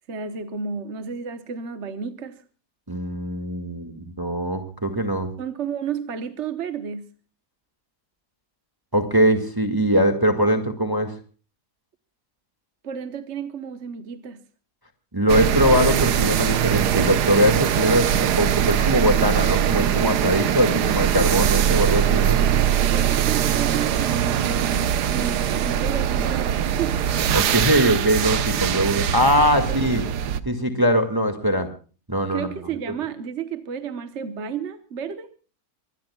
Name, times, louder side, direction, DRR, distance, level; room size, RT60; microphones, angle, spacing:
voice 1, 0.1-2.4 5.4-7.1 12.8-14.4 22.9-27.0 29.7-29.8 32.3-35.3, right 7 dB, 50° right, 1.3 m, -32 dB
voice 2, 2.9-5.3 8.9-11.2 15.1-22.4 27.3-30.0 30.5-31.7 32.1-32.5, equal, 15° right, 1.9 m, -21 dB
sound 1, 15.3-30.4, right 9 dB, 90° right, 1.5 m, -22 dB
25.0 x 19.5 x 2.3 m
omnidirectional pair, 1.7 m